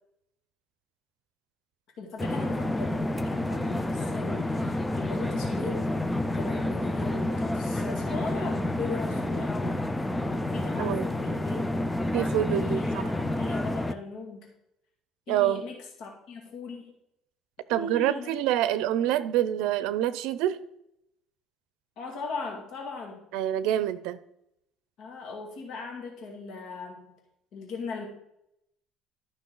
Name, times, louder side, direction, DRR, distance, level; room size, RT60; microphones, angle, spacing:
voice 1, 2.0-5.9 6.2-9.8 10.4-11.7 12.5-14.5 15.3-16.9 17.7-18.4 19.1-19.2 22.0-23.2 25.0-27.1 27.5-28.1, left 4 dB, 60° left, 0 dB, 2.2 m, -38 dB
sound 1, 2.2-13.9, left 1 dB, 5° left, 0.4 m, -29 dB
voice 2, 12.1-13.0 15.3-15.6 17.7-20.6 23.3-24.2, right 12 dB, 80° right, 15 dB, 0.6 m, -26 dB
12.5 x 5.9 x 3.9 m, 0.78 s
cardioid pair, 155°, 0 cm